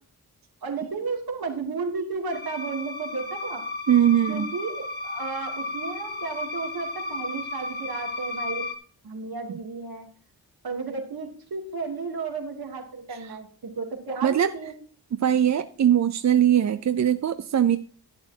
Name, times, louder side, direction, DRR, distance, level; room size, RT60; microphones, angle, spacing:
voice 1, 0.6-3.7 4.3-8.7 9.0-10.1 10.6-14.7, right 4 dB, 70° right, 2 dB, 2.7 m, -33 dB
sound 1, 2.3-8.8, left 2 dB, 25° left, 1.7 m, -34 dB
voice 2, 3.9-4.5 13.1-13.4 14.2-14.5 15.2-17.8, right 10 dB, 50° right, 11 dB, 0.5 m, -21 dB
11.0 x 11.0 x 2.8 m, 0.43 s
wide cardioid pair, 95°, 37 cm